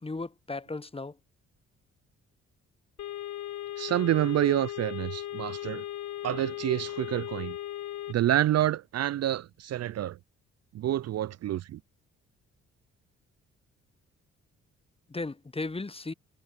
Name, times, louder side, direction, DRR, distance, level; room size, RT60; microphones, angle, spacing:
voice 1, 0.0-1.2 15.1-16.1, left 3 dB, 15° left, 0.9 m, -36 dB
sound 1, 3.0-8.1, left 13 dB, 55° left, 1.0 m, -37 dB
voice 2, 3.8-5.8 6.2-7.6 8.1-10.2 10.7-11.8, right 12 dB, 50° right, 0.5 m, -28 dB
hypercardioid pair, 45°, 33 cm